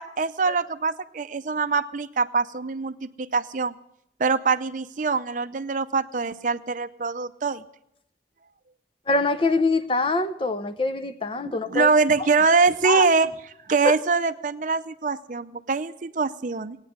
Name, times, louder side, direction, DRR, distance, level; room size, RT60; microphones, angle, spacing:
voice 1, 0.0-3.7 4.2-7.6 11.7-13.3 13.7-16.8, right 4 dB, 45° right, 12 dB, 0.5 m, -23 dB
voice 2, 9.1-11.9 12.8-13.1 13.8-13.9, left 3 dB, 30° left, 11 dB, 0.7 m, -24 dB
17.5 x 9.6 x 7.9 m, 0.77 s
head